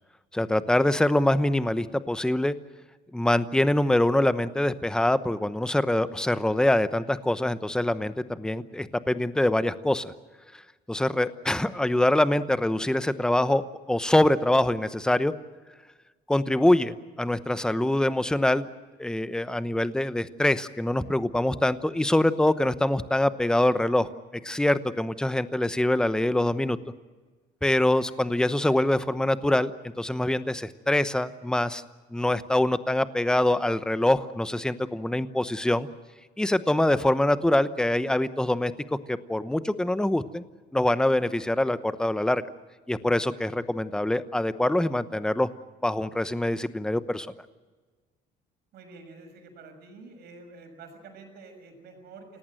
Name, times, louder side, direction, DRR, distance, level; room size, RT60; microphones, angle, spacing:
voice 1, 0.3-2.5 3.1-10.1 10.9-13.6 13.9-15.3 16.3-18.7 19.0-24.1 24.4-26.8 27.6-29.7 30.0-31.8 32.1-35.9 36.4-38.7 39.1-40.4 40.7-42.4 42.9-45.5 45.8-47.3, left 1 dB, 5° left, 12 dB, 0.9 m, -24 dB
voice 2, 48.7-52.4, right 3 dB, 75° right, 5 dB, 6.5 m, -48 dB
28.5 x 18.0 x 7.7 m, 1.3 s
cardioid pair, 110°, 17 cm